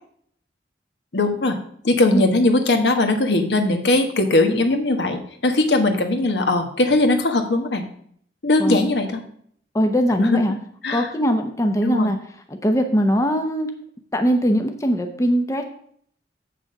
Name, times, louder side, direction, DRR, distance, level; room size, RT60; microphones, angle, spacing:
voice 1, 1.1-1.6 1.8-7.9 8.4-9.2 10.2-10.4 10.8-11.1 11.8-12.1, left 2 dB, 75° left, 6 dB, 1.2 m, -19 dB
voice 2, 9.7-10.6 10.9-12.2 12.6-13.7 14.1-15.6, equal, 20° left, 5 dB, 0.7 m, -20 dB
7.8 x 6.3 x 5.3 m, 0.63 s
head